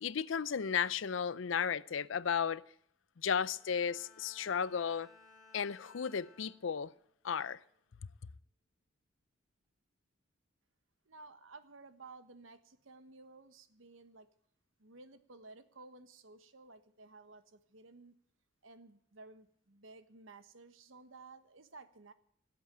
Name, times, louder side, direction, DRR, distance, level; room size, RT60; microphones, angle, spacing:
voice 1, 0.0-2.6 3.2-5.1 5.5-6.9 7.2-7.6, left 7 dB, 75° left, 0.5 m, -34 dB
Bowed string instrument, 3.4-7.0 7.5-7.9, left 4 dB, ahead, 3.2 m, -61 dB
voice 2, 11.0-14.3 14.8-18.1 18.6-22.1, right 3 dB, 85° right, 1.2 m, -55 dB
16.5 x 8.0 x 9.0 m
head